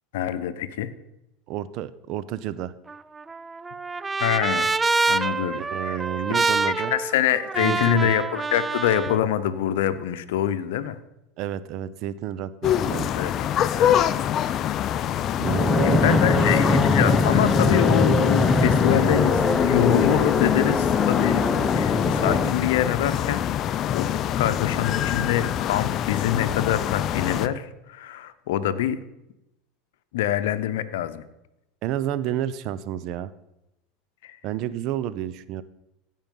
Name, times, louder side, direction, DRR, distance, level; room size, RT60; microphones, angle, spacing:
voice 1, 0.1-0.9 4.2-4.7 5.1-6.0 6.8-11.0 13.1-13.3 13.8-14.1 15.8-21.5 21.7-23.4 23.9-29.0 30.1-31.2 34.2-34.4, left 11 dB, 75° left, 12 dB, 0.8 m, -25 dB
voice 2, 1.5-2.7 5.6-6.9 7.6-8.1 11.4-13.1 15.4-16.8 31.8-33.3 34.4-35.6, right 11 dB, 55° right, 15 dB, 0.7 m, -30 dB
Trumpet, 2.9-9.2, right 3 dB, 15° right, 0.4 m, -26 dB
sound 1, 12.6-27.5, left 10 dB, 45° left, 0.5 m, -26 dB
Fixed-wing aircraft airplane, 15.5-22.5, left 4 dB, 20° left, 1.0 m, -21 dB
16.0 x 5.6 x 5.4 m, 0.90 s
hypercardioid pair, 95°, 0 cm